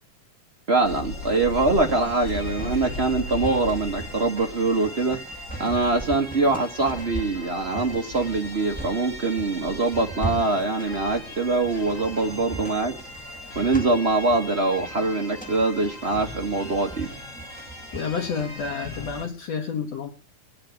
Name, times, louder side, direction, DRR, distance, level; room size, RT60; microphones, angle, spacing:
voice 1, 0.7-5.2 5.6-12.9 13.5-17.1, right 3 dB, 55° right, 2 dB, 0.7 m, -23 dB
sound 1, 0.8-19.2, left 2 dB, 20° left, 5.6 m, -38 dB
sound 2, 1.9-18.8, right 2 dB, 5° left, 1.0 m, -38 dB
voice 2, 17.9-20.1, left 6 dB, 60° left, 5 dB, 2.4 m, -29 dB
19.5 x 7.8 x 9.5 m, 0.41 s
omnidirectional pair, 3.6 m